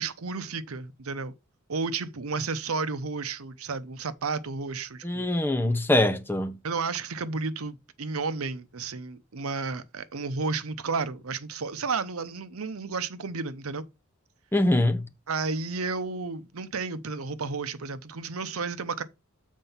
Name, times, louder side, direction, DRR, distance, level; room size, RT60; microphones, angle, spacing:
voice 1, 0.0-1.3 1.7-5.3 6.6-13.8 15.3-19.0, right 4 dB, 80° right, 0.8 m, -32 dB
voice 2, 5.0-6.5 14.5-15.0, left 1 dB, 10° left, 0.7 m, -23 dB
7.5 x 4.5 x 5.6 m
head